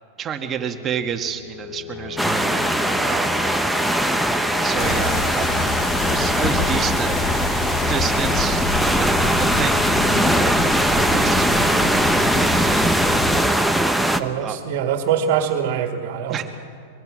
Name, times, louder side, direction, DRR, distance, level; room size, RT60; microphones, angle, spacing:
voice 1, 0.2-2.5 3.0-3.5 4.6-7.1 7.9-10.1 10.4-13.4 14.4-14.6 16.3-16.4, right 7 dB, 25° right, 4 dB, 1.7 m, -30 dB
sound 1, 0.7-13.5, left 6 dB, 80° left, 1.9 m, -37 dB
sound 2, 2.2-14.2, right 1 dB, ahead, 0.8 m, -20 dB
sound 3, 4.8-13.4, left 4 dB, 25° left, 1.5 m, -26 dB
voice 2, 14.2-16.4, right 8 dB, 55° right, 5 dB, 2.0 m, -23 dB
24.5 x 23.0 x 6.4 m, 2.3 s
supercardioid pair, 150°, 0 cm